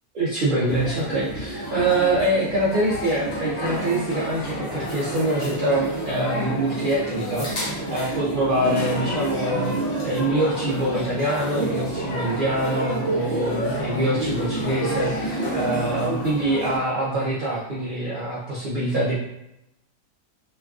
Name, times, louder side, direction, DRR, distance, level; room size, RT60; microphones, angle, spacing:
voice 1, 0.1-19.1, right 1 dB, 90° right, -7 dB, 0.4 m, -25 dB
sound 1, 0.7-16.8, right 1 dB, 55° left, 0.4 m, -29 dB
3.0 x 2.3 x 2.3 m, 0.88 s
omnidirectional pair, 1.5 m